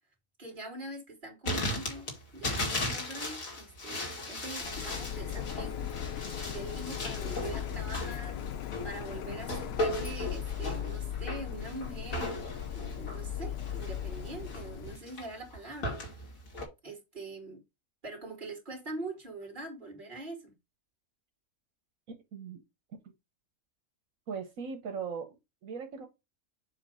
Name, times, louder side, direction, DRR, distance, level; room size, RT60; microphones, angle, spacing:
voice 1, 0.4-5.9 6.4-12.3 12.7-16.2 16.8-17.6 18.0-20.5, right 2 dB, 35° right, 2.5 m, -43 dB
sound 1, 1.4-16.7, left 1 dB, 90° left, 2.3 m, -37 dB
Printer, 4.6-15.0, left 10 dB, 65° left, 0.6 m, -38 dB
voice 2, 24.3-25.4 25.6-26.1, right 6 dB, 80° right, 1.4 m, -38 dB
7.3 x 2.6 x 5.4 m
omnidirectional pair, 1.4 m